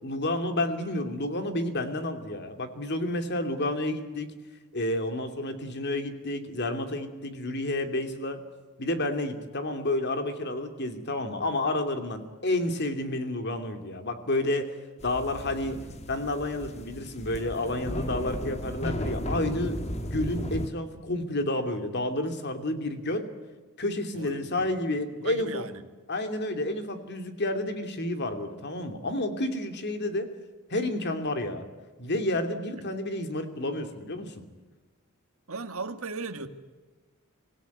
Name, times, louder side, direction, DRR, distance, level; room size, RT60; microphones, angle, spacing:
voice 1, 0.0-4.3 4.7-8.4 8.8-14.7 15.0-15.8 16.1-23.3 23.8-25.6 26.1-30.3 30.7-31.6 32.0-34.4, left 1 dB, 50° left, 7 dB, 2.8 m, -30 dB
sound 1, 15.0-20.7, left 1 dB, 30° left, 1.8 m, -35 dB
voice 2, 24.1-25.8 35.5-36.5, right 3 dB, 70° right, 7 dB, 1.9 m, -37 dB
25.5 x 17.5 x 9.4 m, 1.3 s
head